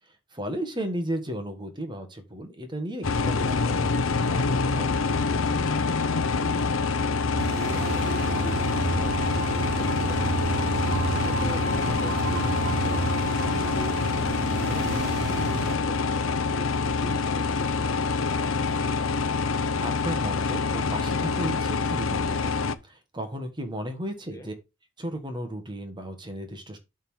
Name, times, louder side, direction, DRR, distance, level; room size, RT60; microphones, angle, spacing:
voice 1, 0.3-4.9 19.8-24.5 25.0-26.8, right 1 dB, 25° right, 6 dB, 1.5 m, -34 dB
sound 1, 3.0-22.8, left 4 dB, 90° left, 0.8 m, -26 dB
voice 2, 5.9-7.1 7.5-10.7 11.0-13.3 13.7-18.9 24.3-24.5, equal, 15° left, 5 dB, 1.5 m, -44 dB
sound 2, 7.4-15.8, right 5 dB, 55° right, 0.4 m, -31 dB
8.0 x 3.7 x 6.3 m, 0.25 s
head